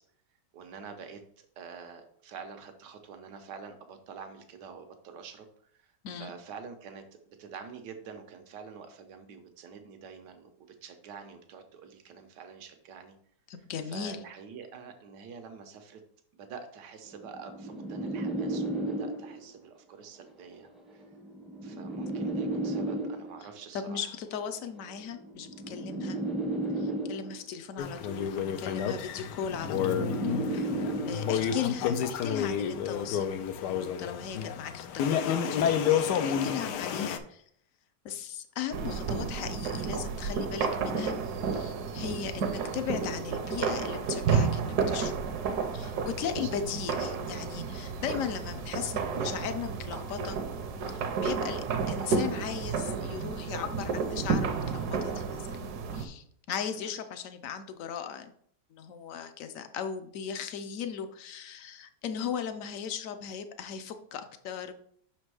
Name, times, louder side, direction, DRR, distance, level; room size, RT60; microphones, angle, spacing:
voice 1, 0.5-13.1 13.8-16.0 16.3-21.1 21.6-24.1 38.8-39.0 46.4-46.6 56.8-56.9, right 6 dB, 85° right, 7 dB, 1.4 m, -47 dB
voice 2, 13.5-14.2 23.7-26.2 26.8-30.6 31.1-33.3 33.7-37.4 38.0-41.2 41.5-45.1 45.7-50.4 50.8-58.3 58.7-64.7, left 7 dB, 65° left, 9 dB, 0.9 m, -37 dB
sound 1, 17.1-19.5 20.5-23.5 24.5-27.5 28.5-31.5, right 2 dB, ahead, 0.5 m, -34 dB
sound 2, 27.8-37.2, left 8 dB, 85° left, 1.2 m, -30 dB
sound 3, 38.7-56.1, right 5 dB, 70° right, 1.2 m, -31 dB
5.9 x 4.4 x 4.7 m, 0.64 s
omnidirectional pair, 1.8 m